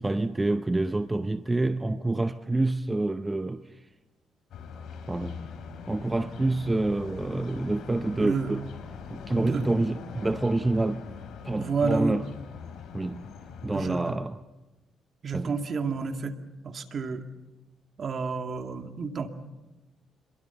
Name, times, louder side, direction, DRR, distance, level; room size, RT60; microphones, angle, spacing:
voice 1, 0.0-3.8 5.1-5.4 5.9-8.7 9.1-11.0 11.4-12.2 12.9-13.3 13.6-14.4 15.3-15.6, right 2 dB, 15° right, 0.8 m, -27 dB
sound 1, 4.5-14.1, left 6 dB, 70° left, 4.2 m, -42 dB
voice 2, 8.2-8.5 9.4-9.6 11.6-12.1 13.7-14.1 15.2-16.4 16.6-17.3 18.0-19.3, right 4 dB, 50° right, 2.3 m, -30 dB
27.0 x 23.0 x 7.1 m
cardioid pair, 90°, 0 cm